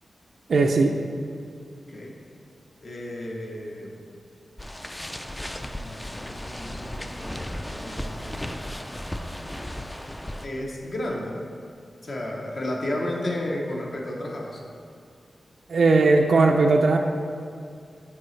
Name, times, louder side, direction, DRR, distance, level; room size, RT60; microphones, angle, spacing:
voice 1, 0.5-1.0 15.7-17.0, right 3 dB, 70° right, 3 dB, 0.4 m, -18 dB
voice 2, 2.8-4.0 5.4-8.4 10.4-11.4 12.0-14.6, left 1 dB, 55° left, -1 dB, 0.8 m, -33 dB
sound 1, 4.6-10.5, left 1 dB, 10° left, 0.3 m, -35 dB
8.6 x 4.8 x 3.2 m, 2.4 s
wide cardioid pair, 140°, 0 cm